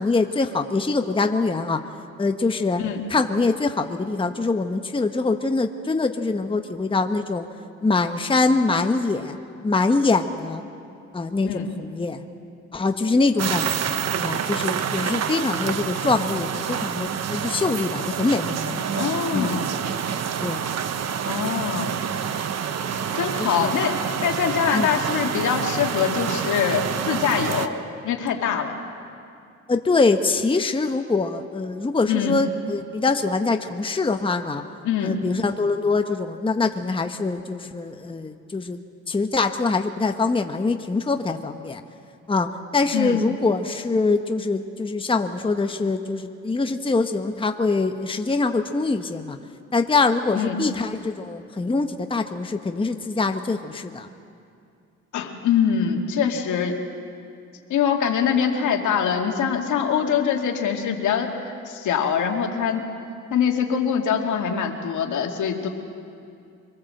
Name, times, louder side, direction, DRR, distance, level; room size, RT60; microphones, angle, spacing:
voice 1, 0.0-1.8 2.2-2.8 3.1-7.5 7.8-9.4 9.6-10.6 11.1-12.2 12.7-19.0 19.3-19.6 20.4-20.7 22.8-23.1 23.4-23.7 24.7-24.9 29.7-34.6 35.0-41.8 42.3-49.4 49.7-54.1, left 3 dB, 15° left, 6 dB, 1.1 m, -24 dB
sound 1, 13.4-27.7, right 8 dB, 60° right, 1.1 m, -27 dB
voice 2, 19.0-19.8 21.2-21.9 23.1-27.7 28.0-28.8 32.1-32.3 34.8-35.2 42.9-43.2 50.3-50.6 55.1-56.8 57.7-61.3 61.7-62.8 63.3-65.7, left 7 dB, 75° left, 3 dB, 2.4 m, -23 dB
25.5 x 19.5 x 7.8 m, 2.5 s
cardioid pair, 90°, 30 cm